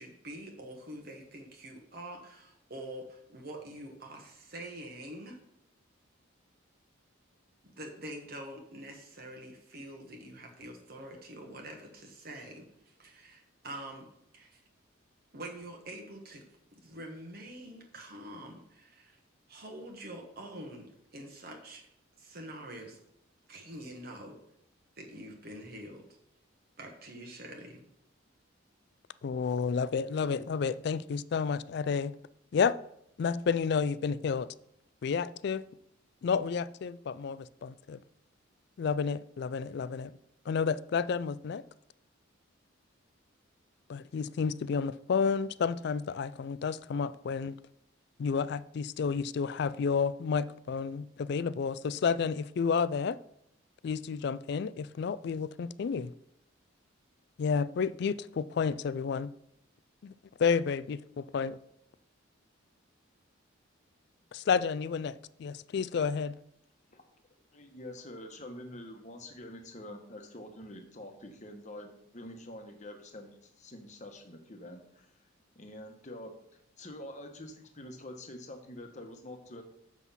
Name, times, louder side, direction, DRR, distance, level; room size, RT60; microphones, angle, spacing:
voice 1, 0.0-5.4 7.8-14.1 14.3-14.6 15.3-16.4 16.7-19.2 19.5-21.9 22.2-23.0 23.5-24.4 25.0-26.0 26.8-27.9, right 1 dB, 50° right, 1.2 m, -45 dB
voice 2, 29.2-32.1 32.5-32.7 33.2-34.5 35.0-35.7 36.2-38.0 38.8-40.2 40.5-41.6 43.9-47.6 48.2-53.2 53.8-56.1 57.4-59.3 60.0-60.1 60.4-61.6 64.3-66.3, left 6 dB, 55° left, 0.3 m, -31 dB
voice 3, 67.5-75.1 75.5-76.3 76.8-79.6, left 1 dB, 35° left, 1.1 m, -46 dB
7.3 x 6.1 x 5.6 m
head